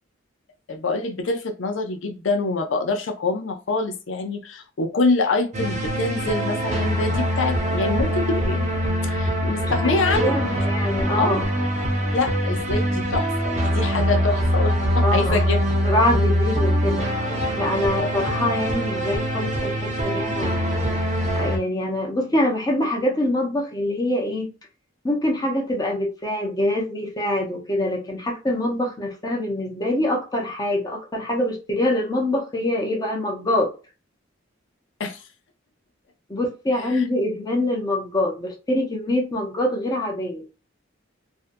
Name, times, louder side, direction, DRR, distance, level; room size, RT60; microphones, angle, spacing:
voice 1, 0.7-10.6 11.2-11.4 12.1-15.6 18.0-18.1 35.0-35.2 36.9-37.0, left 3 dB, 70° left, 5 dB, 0.5 m, -25 dB
sound 1, 5.5-21.6, equal, 35° right, 0.6 m, -23 dB
voice 2, 9.6-11.5 15.0-15.6 15.8-17.1 17.6-20.7 21.4-24.5 25.0-33.7 36.3-40.4, left 1 dB, 20° left, 0 dB, 0.6 m, -24 dB
2.6 x 2.2 x 2.5 m, 0.32 s
head